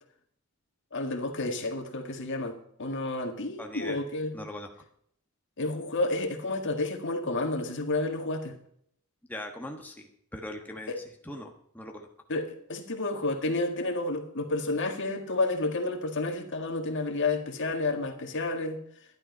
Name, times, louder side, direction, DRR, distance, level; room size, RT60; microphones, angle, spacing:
voice 1, 0.9-4.4 5.6-8.5 10.9-11.0 12.3-18.8, left 2 dB, 55° left, 1.9 m, -30 dB
voice 2, 3.6-4.0 4.3-4.7 9.3-10.9 11.2-11.5 11.7-12.1, left 1 dB, 10° left, 1.3 m, -40 dB
12.5 x 11.5 x 5.4 m
head